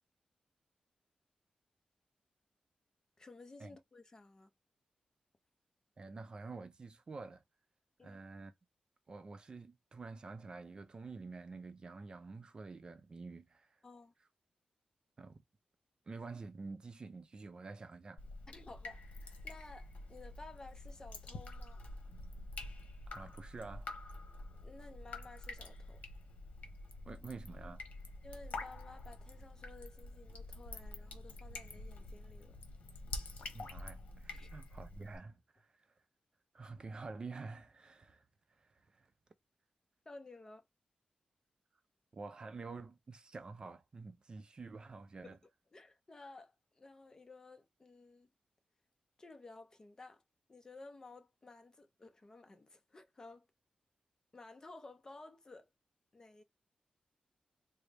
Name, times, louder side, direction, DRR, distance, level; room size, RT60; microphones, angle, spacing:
voice 1, 3.2-4.5 8.0-8.2 13.8-14.1 18.5-21.8 24.5-26.0 28.2-32.6 34.3-34.5 40.1-40.6 45.2-45.4 45.7-48.3 49.2-50.2 50.5-53.5 54.3-55.7 56.1-56.4, left 3 dB, 25° left, 0.6 m, -55 dB
voice 2, 6.0-7.4 8.0-8.5 9.1-13.8 15.2-15.4 16.1-18.2 23.1-23.9 27.0-27.8 33.5-35.9 36.5-38.3 38.6-39.1 42.1-45.4, right 3 dB, 35° right, 0.4 m, -48 dB
Drip, 18.2-35.2, left 2 dB, 65° left, 1.0 m, -47 dB
3.8 x 2.0 x 3.3 m
wide cardioid pair, 150°, 3 cm